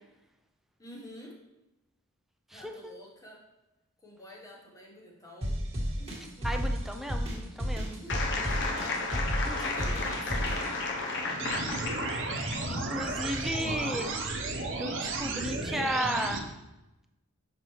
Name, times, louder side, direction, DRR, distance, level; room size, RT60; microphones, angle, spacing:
voice 1, 0.8-1.4 2.5-3.4 4.0-5.6 6.0-7.2 7.9-9.0 9.5-10.4, equal, 15° left, -2 dB, 1.1 m, -49 dB
voice 2, 2.5-2.9 6.4-8.0 9.4-9.6 12.3-14.1 14.4-16.5, equal, ahead, 4 dB, 0.4 m, -35 dB
sound 1, 5.4-10.7, equal, 30° right, 1.5 m, -32 dB
sound 2, 8.1-12.8, left 3 dB, 55° left, 0.9 m, -33 dB
sound 3, 11.4-16.4, right 3 dB, 60° right, 0.8 m, -33 dB
6.0 x 5.8 x 3.1 m, 0.97 s
head